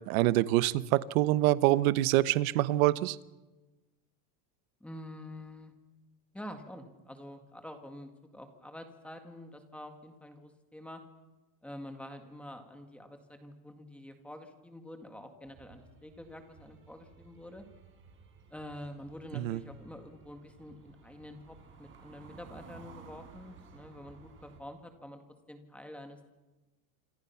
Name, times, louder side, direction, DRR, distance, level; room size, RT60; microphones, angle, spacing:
voice 1, 0.1-3.2 19.3-19.6, right 16 dB, 55° right, 1.1 m, -25 dB
voice 2, 4.8-5.7 6.3-11.0 11.6-17.7 18.5-25.2 25.5-26.3, left 1 dB, ahead, 1.9 m, -47 dB
sound 1, 15.4-24.6, right 5 dB, 25° right, 5.1 m, -55 dB
27.0 x 27.0 x 5.8 m
supercardioid pair, 175°, 49 cm